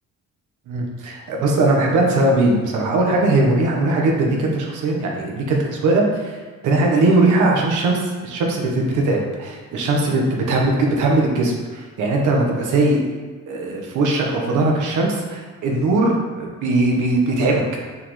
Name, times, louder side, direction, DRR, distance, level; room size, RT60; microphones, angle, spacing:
voice 1, 0.7-6.4 6.6-13.0 13.5-17.6, right 2 dB, 85° right, 0 dB, 1.3 m, -19 dB
6.9 x 5.3 x 3.3 m, 1.4 s
cardioid pair, 90°, 30 cm